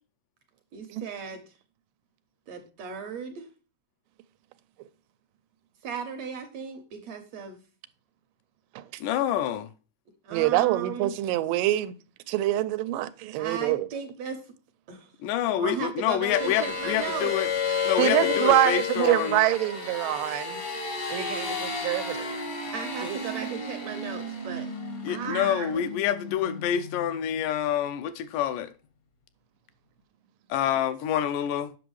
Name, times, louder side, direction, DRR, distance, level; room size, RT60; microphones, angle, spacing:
voice 1, 0.7-1.4 2.5-3.5 5.8-7.6 10.2-11.1 13.4-14.5 14.9-15.1 15.6-17.3 22.2-22.3 22.7-24.7 25.1-25.9, right 6 dB, 70° right, 1.7 m, -36 dB
voice 2, 9.0-9.7 15.2-17.5 17.9-19.4 25.0-28.7 30.5-31.8, left 10 dB, 80° left, 2.1 m, -27 dB
voice 3, 10.3-12.0 12.3-13.9 18.0-20.6 21.1-22.3 23.0-23.2, right 15 dB, 90° right, 2.3 m, -25 dB
sound 1, 16.3-27.1, left 5 dB, 55° left, 0.9 m, -32 dB
8.0 x 6.0 x 3.1 m
omnidirectional pair, 3.8 m